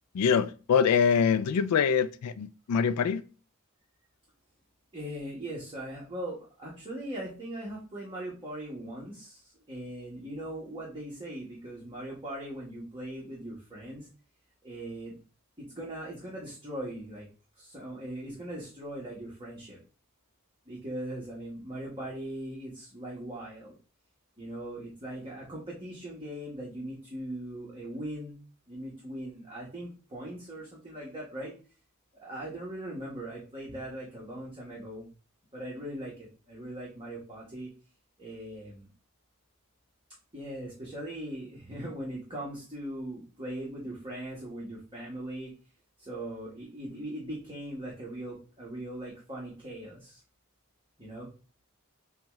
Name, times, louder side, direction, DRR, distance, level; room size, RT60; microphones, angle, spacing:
voice 1, 0.1-3.2, left 6 dB, 90° left, 0.4 m, -24 dB
voice 2, 4.9-14.1 14.6-15.2 15.6-17.2 17.6-19.8 20.7-23.8 24.4-28.4 28.7-31.5 32.2-35.1 35.5-37.7 38.2-38.9 40.3-45.5 46.0-50.2 51.0-51.3, right 1 dB, 25° right, 1.3 m, -40 dB
7.1 x 2.4 x 3.1 m
head